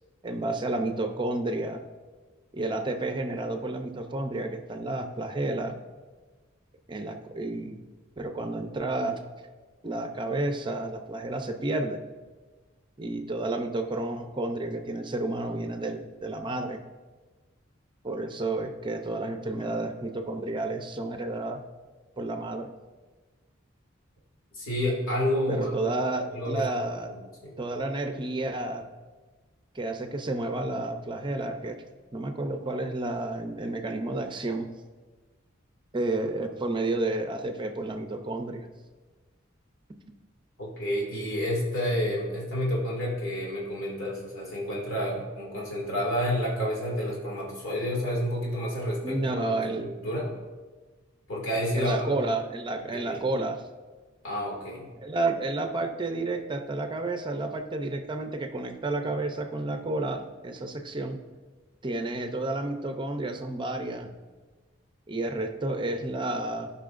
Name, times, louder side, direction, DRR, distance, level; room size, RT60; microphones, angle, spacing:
voice 1, 0.2-1.8 2.5-5.7 6.9-7.8 8.2-9.2 9.8-12.0 13.0-16.8 18.0-21.6 22.2-22.7 25.5-27.1 27.6-28.9 29.7-31.8 32.1-34.7 35.9-38.7 49.0-49.9 51.8-53.6 55.0-61.2 61.8-64.1 65.1-66.7, right 2 dB, 25° right, 6 dB, 0.6 m, -31 dB
voice 2, 24.5-26.0 26.3-26.7 27.0-27.2 27.4-27.6 40.6-50.3 51.3-52.1 52.9-53.2 54.2-54.9, equal, 90° left, -3 dB, 2.3 m, -30 dB
15.5 x 5.5 x 2.5 m, 1.3 s
head